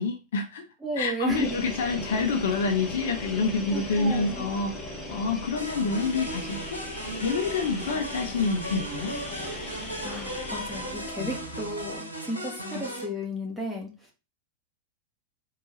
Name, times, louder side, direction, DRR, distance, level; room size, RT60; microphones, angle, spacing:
voice 1, 0.0-0.7 1.0-4.8 5.1-6.8 7.2-9.1 11.2-11.3, left 4 dB, 60° left, 0.7 m, -27 dB
voice 2, 0.8-1.6 3.7-4.5 10.0-13.9, right 1 dB, ahead, 1.8 m, -33 dB
sound 1, 1.3-12.0, left 1 dB, 15° left, 1.5 m, -39 dB
sound 2, 5.6-13.1, right 1 dB, 90° right, 1.5 m, -36 dB
4.5 x 3.8 x 3.1 m
figure-of-eight pair, 90°, 0 cm